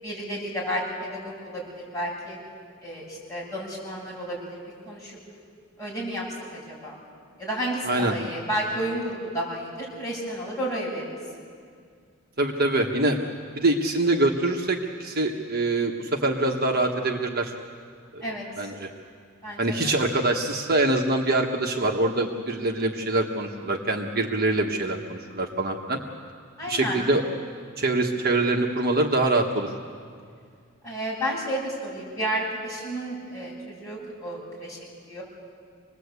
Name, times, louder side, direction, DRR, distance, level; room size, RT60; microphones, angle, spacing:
voice 1, 0.0-2.4 2.8-4.6 4.9-5.2 5.8-6.2 6.5-7.0 7.4-11.0 18.2-18.7 19.4-19.9 26.6-27.0 30.8-34.8 35.1-35.2, right 1 dB, 15° left, -5 dB, 7.6 m, -31 dB
voice 2, 7.8-8.1 12.4-13.2 13.5-17.5 18.1-18.2 18.6-18.9 19.6-26.0 26.7-27.2 27.8-29.7, right 2 dB, 45° right, 1 dB, 1.4 m, -24 dB
26.0 x 20.0 x 8.3 m, 2.2 s
head